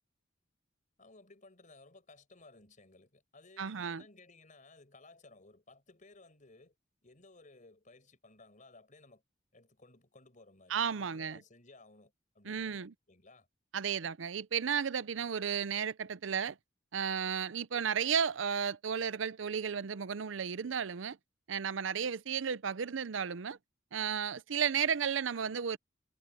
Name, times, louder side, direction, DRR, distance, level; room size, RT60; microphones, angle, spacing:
voice 1, 1.0-6.7 7.0-9.2 9.5-13.5, left 3 dB, 40° left, 5.3 m, -58 dB
voice 2, 3.6-4.0 10.7-11.4 12.5-12.9 13.7-16.6 16.9-21.2 21.5-23.6 23.9-25.8, right 7 dB, 80° right, 0.6 m, -33 dB
head